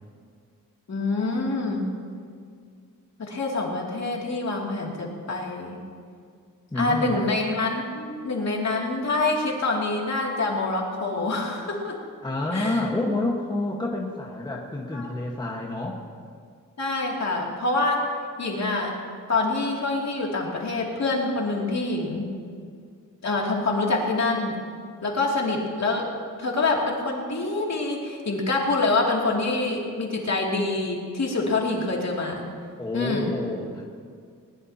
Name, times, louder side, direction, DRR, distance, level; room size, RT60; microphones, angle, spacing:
voice 1, 0.9-1.9 3.2-5.8 6.7-12.0 12.5-12.8 14.9-15.1 16.8-18.0 18.4-18.9 19.3-22.3 23.2-24.6 25.0-26.0 26.4-32.5 32.9-33.3, left 3 dB, 50° left, -2 dB, 2.7 m, -26 dB
voice 2, 6.7-7.2 12.2-16.0 32.8-33.8, left 2 dB, 10° left, -2 dB, 1.4 m, -28 dB
20.5 x 20.0 x 2.9 m, 2.1 s
wide cardioid pair, 145°, 33 cm